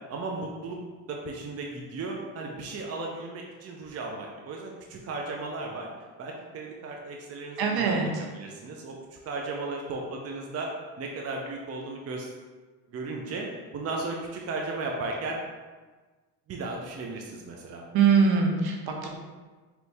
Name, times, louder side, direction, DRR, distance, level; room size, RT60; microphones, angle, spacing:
voice 1, 0.1-0.8 1.1-5.9 6.2-8.0 8.3-8.9 9.3-10.7 11.0-12.3 12.9-15.4 16.5-17.8, right 3 dB, 35° right, 0 dB, 0.6 m, -35 dB
voice 2, 7.6-8.1 17.9-19.1, right 5 dB, 60° right, 1 dB, 0.9 m, -22 dB
4.0 x 3.0 x 3.4 m, 1.3 s
supercardioid pair, 75°, 43 cm